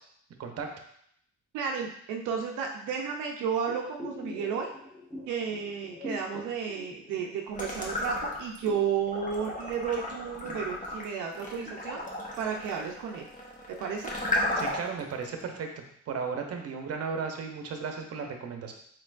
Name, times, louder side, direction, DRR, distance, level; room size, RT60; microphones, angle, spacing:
voice 1, 0.4-0.7 14.6-15.7 16.1-18.7, right 5 dB, 55° right, 4 dB, 0.8 m, -35 dB
voice 2, 1.5-4.7 5.3-12.0 12.4-13.3 13.7-14.1, right 7 dB, 85° right, 1 dB, 0.6 m, -32 dB
sound 1, 3.6-8.1 8.3-11.9 12.2-12.3, left 1 dB, 10° left, 1.3 m, -45 dB
sound 2, 7.5-8.7 9.1-15.0, left 1 dB, 25° left, 1.1 m, -34 dB
4.3 x 3.8 x 2.5 m, 0.68 s
cardioid pair, 90°, 30 cm